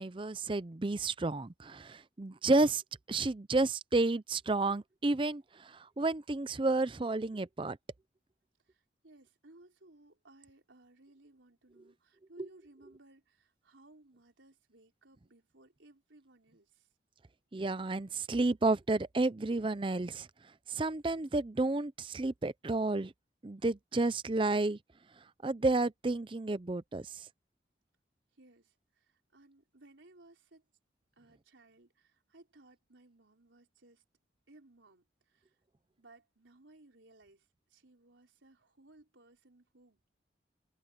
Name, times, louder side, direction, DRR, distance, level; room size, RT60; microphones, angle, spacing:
voice 1, 0.0-2.8 3.1-7.8 17.5-20.3 20.7-23.1 23.4-24.8 25.4-27.3, right 2 dB, 25° right, 0.5 m, -31 dB
voice 2, 8.7-16.9 28.4-30.6 31.2-34.0 34.5-35.5 36.0-40.1, right 2 dB, 85° right, 4.1 m, -61 dB
head